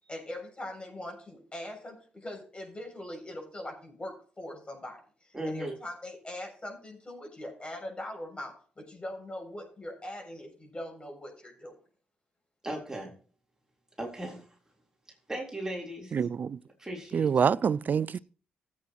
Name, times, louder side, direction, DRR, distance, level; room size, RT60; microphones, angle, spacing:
voice 1, 0.0-11.7, left 1 dB, 30° left, 7.1 m, -41 dB
voice 2, 5.3-5.8 12.6-13.1 14.0-14.5 15.3-16.1 16.8-17.6, right 1 dB, 15° right, 3.9 m, -37 dB
voice 3, 16.1-16.6 17.1-18.2, right 7 dB, 50° right, 0.4 m, -26 dB
16.0 x 8.5 x 3.1 m
supercardioid pair, 55°, 4 cm